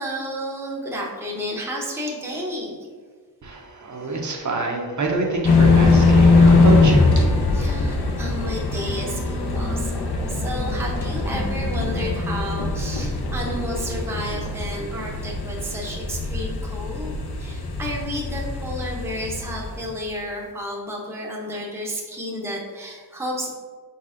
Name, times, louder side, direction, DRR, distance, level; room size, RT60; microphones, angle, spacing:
voice 1, 0.0-2.9 7.5-17.1 17.4-23.5, equal, 5° right, -2 dB, 0.6 m, -31 dB
voice 2, 3.4-7.3, right 3 dB, 50° right, 0 dB, 0.6 m, -26 dB
sound 1, 5.4-19.9, left 3 dB, 75° left, 0.7 m, -21 dB
5.1 x 4.1 x 2.5 m, 1.6 s
wide cardioid pair, 160°, 39 cm